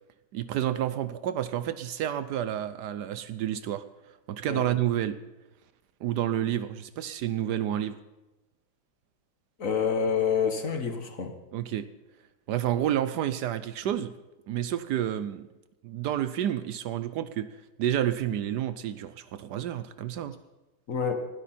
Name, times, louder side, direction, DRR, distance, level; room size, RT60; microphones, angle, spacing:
voice 1, 0.3-5.2 6.0-8.0 11.5-11.9 12.5-14.1 14.5-15.5 15.8-20.3, right 11 dB, 75° right, 13 dB, 1.0 m, -30 dB
voice 2, 9.6-11.3 20.9-21.1, left 6 dB, 45° left, 6 dB, 1.3 m, -27 dB
20.0 x 12.5 x 4.3 m, 1.1 s
omnidirectional pair, 2.4 m